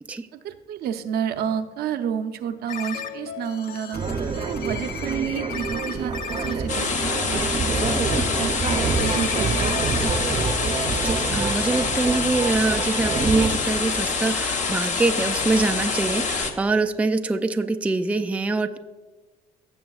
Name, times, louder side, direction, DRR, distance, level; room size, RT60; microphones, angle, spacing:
voice 1, 0.3-4.0 4.4-7.8 8.3-9.7, right 8 dB, 70° right, 9 dB, 0.6 m, -30 dB
sound 1, 2.7-12.1, left 7 dB, 75° left, 0.6 m, -36 dB
sound 2, 3.9-13.5, right 5 dB, 35° right, 0.7 m, -27 dB
sound 3, 6.7-16.5, left 4 dB, 45° left, 0.9 m, -26 dB
voice 2, 11.0-18.8, right 3 dB, 10° right, 8 dB, 0.4 m, -24 dB
15.5 x 7.0 x 2.4 m, 1.3 s
cardioid pair, 110°, 17 cm